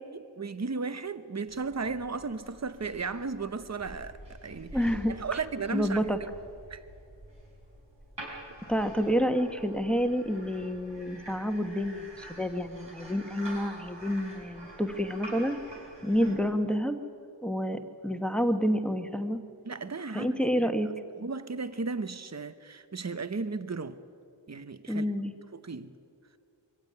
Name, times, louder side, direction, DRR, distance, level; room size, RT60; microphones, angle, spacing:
voice 1, 0.1-4.8 5.1-6.0 6.7-6.8 19.6-20.7 21.2-24.0 24.5-25.1 25.5-25.9, right 4 dB, 35° right, 1.0 m, -35 dB
sound 1, 1.5-16.4, right 1 dB, 70° right, 6.2 m, -47 dB
voice 2, 4.7-5.1 5.7-6.2 8.7-15.6 16.0-17.0 17.4-19.4 20.1-20.9 24.9-25.3, equal, ahead, 1.4 m, -28 dB
23.5 x 15.5 x 9.6 m
wide cardioid pair, 55°, 45 cm